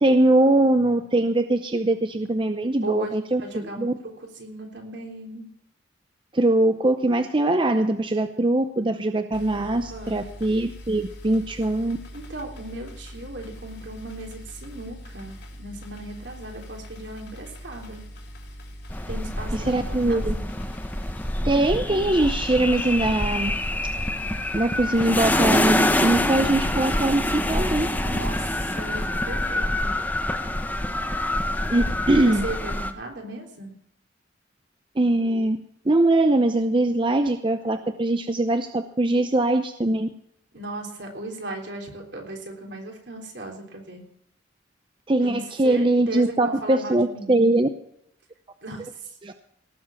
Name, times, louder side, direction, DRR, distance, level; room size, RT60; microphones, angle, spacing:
voice 1, 0.0-3.9 6.3-12.0 19.5-20.3 21.4-23.5 24.5-27.9 31.7-32.5 35.0-35.6 35.9-40.1 45.1-47.7 49.2-49.3, right 2 dB, 25° right, 8 dB, 0.6 m, -22 dB
voice 2, 3.4-3.9 4.2-5.5 9.5-10.3 12.1-18.0 19.1-20.5 28.0-30.0 32.2-33.7 40.5-44.0 45.2-47.4 48.6-49.2, right 1 dB, 65° right, 1 dB, 3.5 m, -37 dB
sound 1, 9.3-29.1, equal, 60° left, 3.0 m, -42 dB
sound 2, 18.9-32.9, left 1 dB, 10° left, 1.0 m, -26 dB
18.0 x 7.2 x 7.3 m, 0.74 s
head